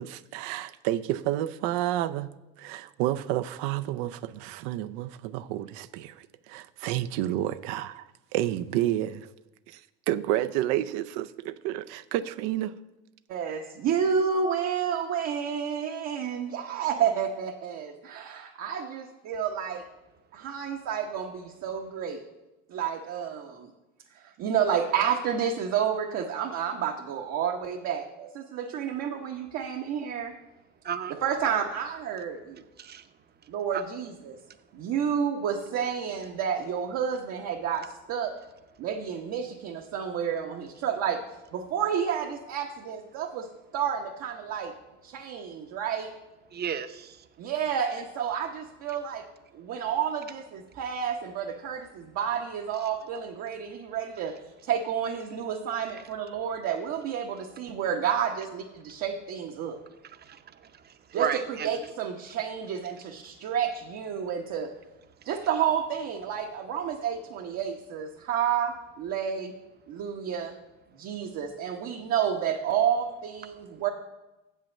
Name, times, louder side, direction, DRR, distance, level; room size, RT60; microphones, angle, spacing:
voice 1, 0.0-9.3 9.7-9.8 10.1-12.7, right 13 dB, 80° right, 0.6 m, -30 dB
voice 2, 13.3-19.8 20.3-22.2 22.7-23.7 24.1-30.3 31.2-32.6 33.5-34.4 34.7-38.3 38.8-41.2 41.5-43.5 43.7-44.7 45.0-46.1 47.4-49.2 49.5-59.8 61.1-64.7 65.2-69.5 69.9-70.5 70.9-73.9, right 8 dB, 65° right, 1.0 m, -30 dB
voice 3, 30.8-31.2 32.8-33.8 34.3-34.8 46.5-47.3 52.8-52.9 58.9-59.0 60.0-61.7 65.2-65.3, right 8 dB, 35° right, 0.7 m, -35 dB
7.5 x 5.6 x 7.2 m
supercardioid pair, 85°, 29 cm